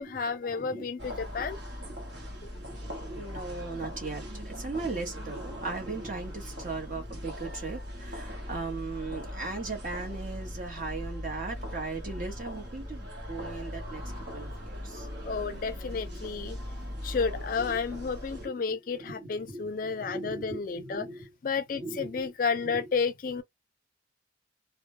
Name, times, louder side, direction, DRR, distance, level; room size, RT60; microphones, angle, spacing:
voice 1, 0.0-1.6 15.2-16.6 17.0-21.1 21.4-23.4, left 5 dB, 45° left, 0.4 m, -31 dB
voice 2, 0.5-1.1 2.3-15.1 17.6-17.8 18.3-18.4 19.0-21.3 21.8-22.3 22.6-22.8, right 3 dB, 45° right, 1.0 m, -38 dB
sound 1, 1.0-18.5, left 1 dB, 75° right, 1.0 m, -40 dB
2.2 x 2.1 x 2.8 m
head